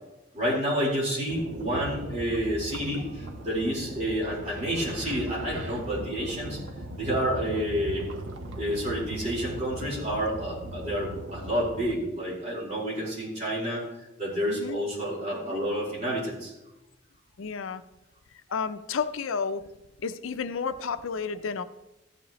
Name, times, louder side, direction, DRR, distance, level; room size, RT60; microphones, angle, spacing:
voice 1, 0.3-6.6 7.0-8.1 8.5-13.8 14.2-16.5, equal, 35° right, -5 dB, 4.4 m, -29 dB
sound 1, 1.3-11.9, right 1 dB, 75° right, 1.1 m, -39 dB
voice 2, 14.5-14.8 17.4-17.8 18.5-19.6 20.0-21.6, left 5 dB, 85° left, 11 dB, 0.6 m, -31 dB
14.5 x 10.0 x 3.1 m, 0.96 s
head